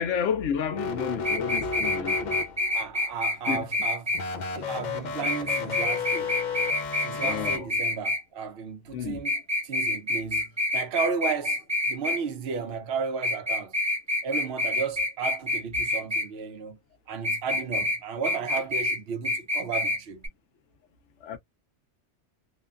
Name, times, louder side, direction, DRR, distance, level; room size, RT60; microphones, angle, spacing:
voice 1, 0.0-2.4 3.5-3.7 7.1-7.7 8.9-9.2 17.7-17.8 21.2-21.4, left 7 dB, 85° left, 1.0 m, -31 dB
sound 1, 0.7-2.9 4.1-7.6, left 5 dB, 55° left, 0.5 m, -32 dB
sound 2, 1.2-4.2 5.2-8.2 9.2-12.2 13.2-16.3 17.2-18.0 18.2-19.0 19.2-20.0 20.2-20.3, left 2 dB, 15° right, 0.7 m, -27 dB
voice 2, 2.7-4.2 4.5-6.5 7.0-9.3 9.6-13.8 14.2-16.8 17.1-20.3, right 5 dB, 65° right, 0.9 m, -34 dB
3.0 x 2.2 x 2.3 m
omnidirectional pair, 1.2 m